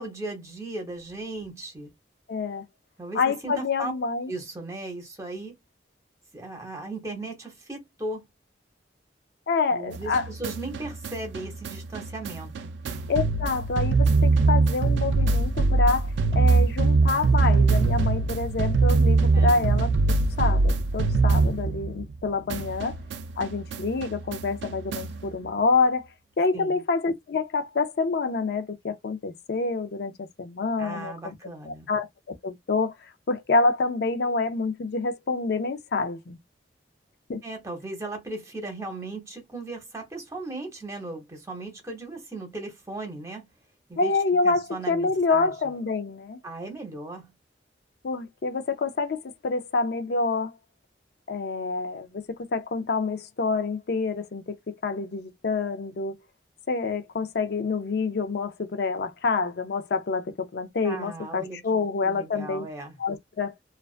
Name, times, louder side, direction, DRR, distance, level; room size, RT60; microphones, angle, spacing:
voice 1, 0.0-1.9 3.0-3.9 4.3-5.6 6.3-8.3 9.7-12.5 19.3-19.7 26.5-26.8 30.8-31.9 37.4-43.5 43.9-44.1 44.4-45.5 46.4-47.3 60.8-62.9, right 2 dB, 15° right, 0.8 m, -37 dB
voice 2, 2.3-2.6 3.1-4.3 9.5-10.3 13.1-19.9 20.4-23.0 23.4-26.0 26.4-31.4 31.7-32.9 33.3-36.4 37.3-37.4 44.0-46.4 48.0-50.6 51.3-56.2 56.7-62.7 63.0-63.5, left 4 dB, 60° left, 0.4 m, -27 dB
sound 1, 9.9-22.2 22.5-25.3, right 3 dB, 75° right, 0.3 m, -23 dB
2.4 x 2.2 x 2.4 m
head